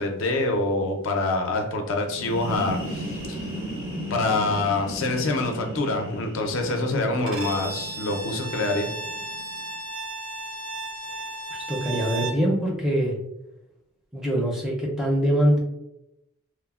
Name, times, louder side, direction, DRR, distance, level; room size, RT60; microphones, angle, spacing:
voice 1, 0.0-3.5 4.1-8.9, left 2 dB, 65° left, 4 dB, 0.4 m, -26 dB
sound 1, 2.0-9.6, equal, 80° right, 0.9 m, -36 dB
Bowed string instrument, 7.3-12.5, right 2 dB, 65° right, 0.5 m, -34 dB
voice 2, 11.5-13.1 14.1-15.6, right 1 dB, 5° right, -3 dB, 0.4 m, -23 dB
3.0 x 2.0 x 2.3 m, 0.88 s
head